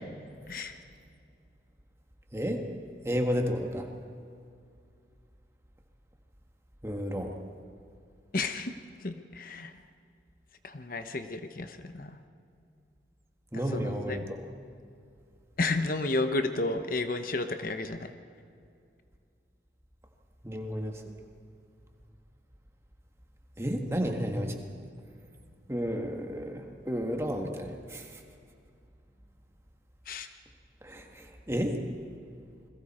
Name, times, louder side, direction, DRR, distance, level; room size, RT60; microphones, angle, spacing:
voice 1, 2.3-2.7 3.0-3.9 6.8-7.3 13.5-14.4 20.4-21.2 23.6-24.6 25.7-28.2 30.8-31.8, equal, 15° right, 3 dB, 1.6 m, -32 dB
voice 2, 8.3-8.7 9.0-9.7 10.6-12.2 13.5-14.3 15.6-18.1 30.1-30.3, left 2 dB, 50° left, 8 dB, 0.9 m, -32 dB
28.5 x 21.5 x 4.4 m, 2.4 s
head